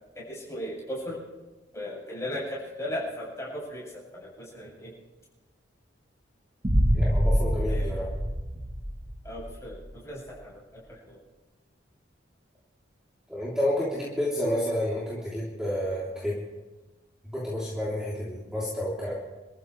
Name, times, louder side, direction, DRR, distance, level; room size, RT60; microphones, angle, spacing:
voice 1, 0.1-1.2 1.7-3.8 4.1-4.9 7.7-7.9 9.2-10.6 10.9-11.2, left 1 dB, 15° left, -6 dB, 7.8 m, -36 dB
Boom, 6.6-9.6, equal, 30° right, 1.2 m, -25 dB
voice 2, 6.9-8.1 13.3-16.4 17.3-19.1, left 1 dB, 5° right, -8 dB, 3.4 m, -30 dB
29.5 x 14.5 x 3.4 m, 1.2 s
head